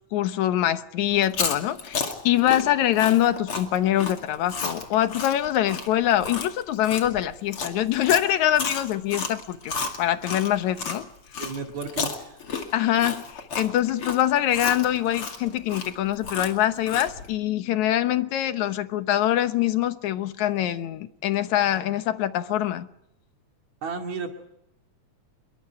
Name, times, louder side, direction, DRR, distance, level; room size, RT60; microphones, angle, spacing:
voice 1, 0.1-11.1 12.7-22.9, left 12 dB, 80° left, 2.5 m, -24 dB
Chewing mastication, 1.2-11.0 11.3-17.3, left 5 dB, 50° left, 3.1 m, -32 dB
voice 2, 11.4-12.4 23.8-24.3, right 5 dB, 70° right, 3.6 m, -33 dB
26.5 x 23.0 x 4.8 m
omnidirectional pair, 3.3 m